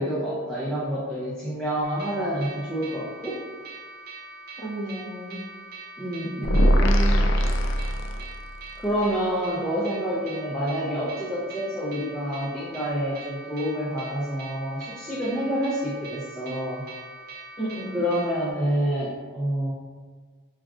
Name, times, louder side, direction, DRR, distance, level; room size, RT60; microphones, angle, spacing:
voice 1, 0.0-3.4 6.0-6.7 8.8-16.8 17.9-19.7, equal, 5° left, -9 dB, 0.5 m, -28 dB
sound 1, 1.8-18.5, right 3 dB, 45° right, 0.7 m, -43 dB
voice 2, 4.6-5.4 6.4-7.4 17.6-18.2, right 1 dB, 25° left, -5 dB, 0.9 m, -32 dB
sound 2, 6.4-8.5, equal, 65° left, 0.3 m, -21 dB
5.8 x 2.4 x 2.4 m, 1.5 s
head